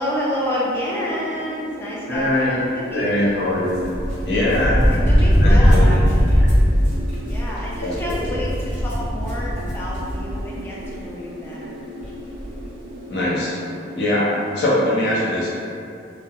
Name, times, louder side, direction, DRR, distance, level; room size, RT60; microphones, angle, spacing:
voice 1, 0.0-3.5 4.9-6.6 7.2-11.9, equal, 10° left, -6 dB, 0.4 m, -29 dB
sound 1, 0.6-15.1, right 1 dB, 65° right, 0.3 m, -38 dB
voice 2, 2.1-2.6 2.9-3.8 4.2-4.8 5.4-5.9 7.8-8.2 13.1-13.6 13.9-15.5, left 1 dB, 60° left, -6 dB, 0.6 m, -21 dB
sound 2, 3.7-10.5 10.8-10.9 12.0-12.1 12.4-12.6, equal, 25° left, 1.3 m, -19 dB
2.8 x 2.1 x 2.3 m, 2.5 s
head